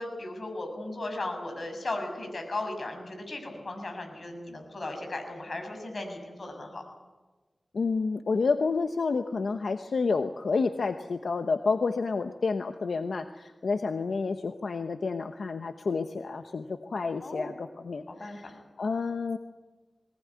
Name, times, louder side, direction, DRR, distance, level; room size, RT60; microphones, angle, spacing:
voice 1, 0.0-6.8 17.2-17.5 18.1-18.5, left 2 dB, 55° left, 4 dB, 6.6 m, -36 dB
voice 2, 7.7-19.4, left 4 dB, 85° left, 7 dB, 0.9 m, -29 dB
22.0 x 19.0 x 9.7 m, 1.2 s
wide cardioid pair, 75°, 0 cm